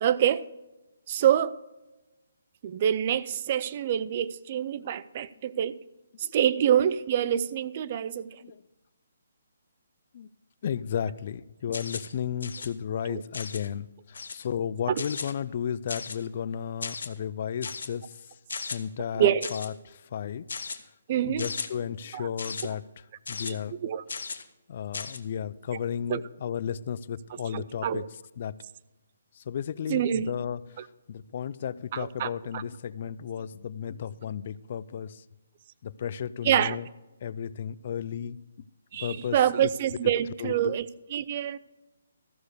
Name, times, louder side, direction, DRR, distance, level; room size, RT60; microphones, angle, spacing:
voice 1, 0.0-0.4 1.1-1.6 2.6-5.8 6.2-8.4 13.1-13.2 14.9-15.0 19.1-19.5 21.1-21.5 22.1-22.3 23.4-23.6 23.8-24.0 26.1-26.2 27.5-28.1 29.9-30.3 30.8-30.9 31.9-32.6 36.4-36.8 38.9-41.6, right 10 dB, 35° right, 0.4 m, -26 dB
voice 2, 10.6-18.1 18.7-20.5 21.2-22.8 23.3-23.7 24.7-28.0 28.4-28.5 29.5-30.6 31.1-35.2 35.8-36.9 37.2-38.4 39.0-39.7 40.4-40.7, left 8 dB, 45° left, 0.4 m, -33 dB
sound 1, 11.7-12.1 12.4-12.7 13.3-13.7 14.1-14.5 15.0-15.3 15.9-16.3 16.8-17.1 17.6-17.9 18.5-18.8 19.4-19.7 20.5-20.8 21.4-21.7 22.4-22.7 23.3-23.5 24.1-24.4 24.9-25.2, left 5 dB, 70° left, 1.1 m, -36 dB
14.0 x 6.5 x 6.7 m
hypercardioid pair, 160°, 0 cm